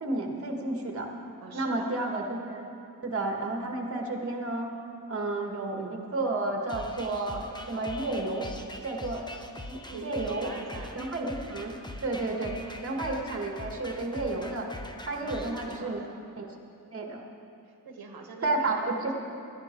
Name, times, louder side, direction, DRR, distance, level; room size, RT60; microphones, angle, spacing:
voice 1, 0.0-1.1 1.5-2.6 3.0-4.7 5.1-8.5 8.8-9.3 9.7-10.5 10.9-11.7 12.0-14.7 15.1-16.0 16.4-16.5 16.9-17.2 18.4-19.1, right 2 dB, 40° right, 1 dB, 1.6 m, -31 dB
voice 2, 1.4-1.9 9.9-11.0 12.2-12.9 15.2-16.2 17.6-19.1, right 3 dB, 90° right, 3 dB, 1.5 m, -43 dB
sound 1, 6.7-15.8, left 1 dB, 10° left, 0.9 m, -43 dB
18.0 x 12.0 x 4.5 m, 2.7 s
wide cardioid pair, 120°, 36 cm